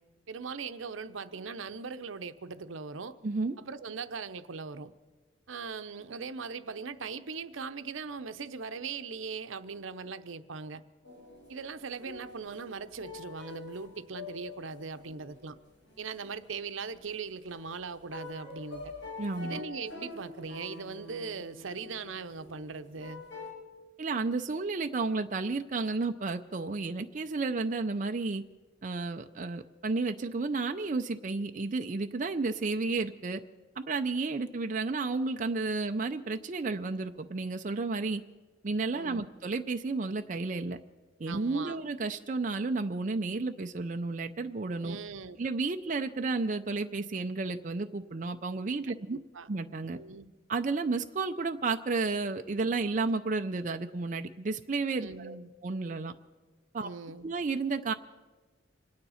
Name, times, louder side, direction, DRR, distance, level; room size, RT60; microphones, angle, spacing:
voice 1, 0.3-3.2 3.6-4.9 5.5-10.8 11.5-15.6 16.0-18.8 19.4-23.2 38.9-39.3 41.3-41.8 44.8-45.4 49.1-49.5 49.9-50.3 55.0-55.5 56.8-57.3, right 5 dB, 80° right, 11 dB, 0.7 m, -40 dB
voice 2, 3.2-3.6 19.2-19.6 24.0-28.4 28.8-33.4 33.8-38.2 38.6-40.8 41.2-45.0 45.4-49.2 49.5-50.0 50.5-56.1 56.7-56.9 57.2-57.9, right 3 dB, 40° right, 6 dB, 0.5 m, -32 dB
sound 1, 11.0-23.5, left 3 dB, 55° left, 5.2 m, -47 dB
26.0 x 9.7 x 5.7 m, 1.3 s
head